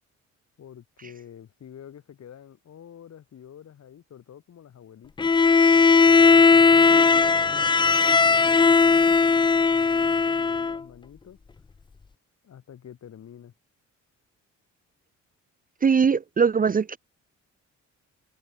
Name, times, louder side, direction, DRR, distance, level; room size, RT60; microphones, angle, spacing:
voice 1, 0.6-5.3 6.1-11.4 12.4-13.5, left 9 dB, 60° left, 4.5 m, -47 dB
Bowed string instrument, 5.2-10.8, left 4 dB, 15° left, 0.4 m, -18 dB
voice 2, 15.8-17.0, right 6 dB, 30° right, 0.7 m, -21 dB
cardioid pair, 90°, 30 cm